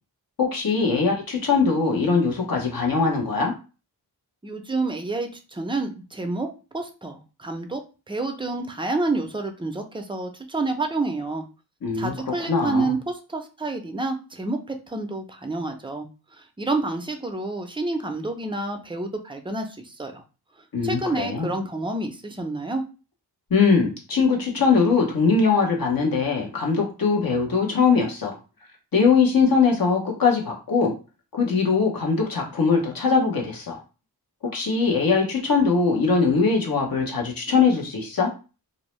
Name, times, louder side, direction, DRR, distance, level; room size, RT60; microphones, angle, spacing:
voice 1, 0.4-3.5 11.8-12.1 12.5-12.9 20.7-21.5 23.5-28.3 28.9-30.9 31.3-33.8 34.5-38.3, left 5 dB, 60° left, 0 dB, 1.0 m, -21 dB
voice 2, 4.4-11.4 11.9-16.1 16.4-20.2 20.8-22.8, right 2 dB, 15° right, 5 dB, 0.4 m, -29 dB
2.6 x 2.1 x 3.0 m, 0.33 s
wide cardioid pair, 75°, 40 cm